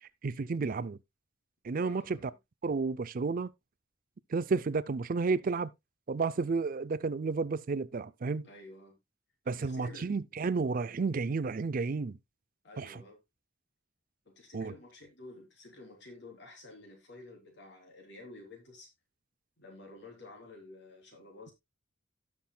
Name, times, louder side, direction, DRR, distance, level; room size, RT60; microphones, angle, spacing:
voice 1, 0.2-1.0 1.6-2.3 2.6-3.5 4.3-5.7 6.1-8.5 9.5-12.2 12.8-13.0 14.5-14.7, right 4 dB, 45° right, 0.4 m, -31 dB
voice 2, 1.8-2.3 8.4-9.0 9.4-10.1 12.6-13.2 14.2-18.9 19.6-21.5, left 2 dB, 60° left, 3.3 m, -51 dB
17.0 x 6.0 x 2.2 m
head